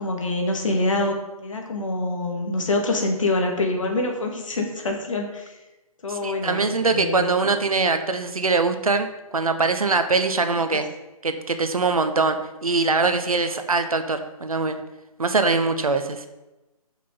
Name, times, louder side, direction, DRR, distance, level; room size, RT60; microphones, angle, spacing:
voice 1, 0.0-5.5 6.0-7.5 10.4-10.8, left 2 dB, 55° left, 2 dB, 2.0 m, -26 dB
voice 2, 6.1-10.9 11.2-14.8 15.2-16.3, right 3 dB, 70° right, 8 dB, 0.9 m, -22 dB
7.5 x 6.0 x 5.4 m, 1.0 s
figure-of-eight pair, 140°, 19 cm